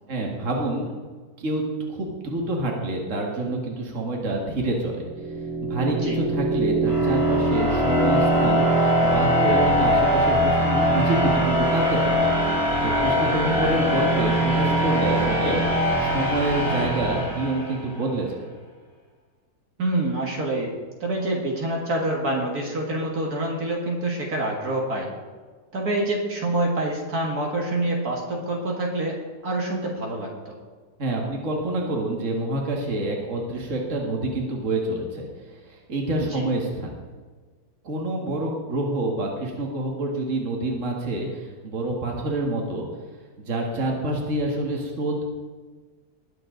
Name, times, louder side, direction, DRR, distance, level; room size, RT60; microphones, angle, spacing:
voice 1, 0.1-0.9 1.4-5.1 5.6-12.3 12.8-18.5 31.0-37.0 37.8-42.9 43.4-45.2, right 1 dB, 50° right, 0 dB, 2.2 m, -27 dB
sound 1, 5.0-17.9, equal, 40° left, 3.1 m, -22 dB
voice 2, 19.8-20.7 21.0-25.1 25.7-29.2 29.4-30.5 36.3-36.4, right 1 dB, 65° right, -2 dB, 2.3 m, -26 dB
20.5 x 7.7 x 3.9 m, 1.4 s
omnidirectional pair, 1.7 m